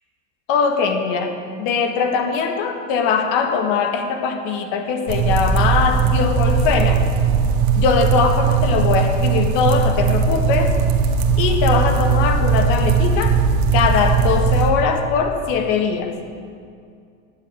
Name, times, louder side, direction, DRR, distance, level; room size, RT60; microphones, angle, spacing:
voice 1, 0.5-7.0 7.8-10.8 11.4-13.4 13.7-16.1, left 5 dB, 65° left, 5 dB, 1.7 m, -21 dB
sound 1, 5.1-14.7, right 5 dB, 70° right, 1.9 m, -18 dB
13.5 x 7.0 x 9.8 m, 2.3 s
supercardioid pair, 115°, 36 cm